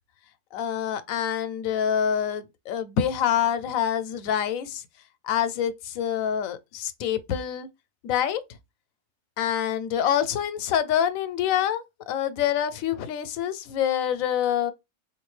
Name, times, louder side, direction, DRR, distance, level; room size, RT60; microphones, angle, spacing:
voice 1, 0.5-4.8 5.2-7.7 8.0-8.4 9.4-14.7, left 9 dB, 90° left, 1.0 m, -26 dB
3.8 x 2.4 x 3.1 m
omnidirectional pair, 1.4 m